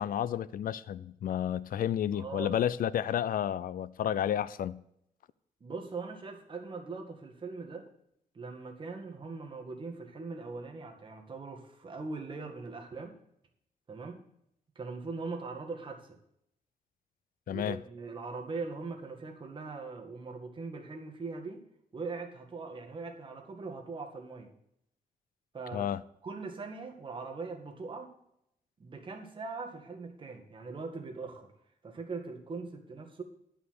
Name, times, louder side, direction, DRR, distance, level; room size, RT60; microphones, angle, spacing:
voice 1, 0.0-4.8 17.5-17.8 25.7-26.0, left 10 dB, 75° left, 0.5 m, -31 dB
voice 2, 2.1-2.6 5.6-7.9 8.3-13.2 13.9-14.2 14.8-16.2 17.5-21.6 21.9-24.5 25.5-25.9 26.2-28.1 28.8-31.5 31.8-33.2, right 4 dB, 35° right, 1.9 m, -41 dB
11.0 x 5.7 x 7.9 m
wide cardioid pair, 165°, 15 cm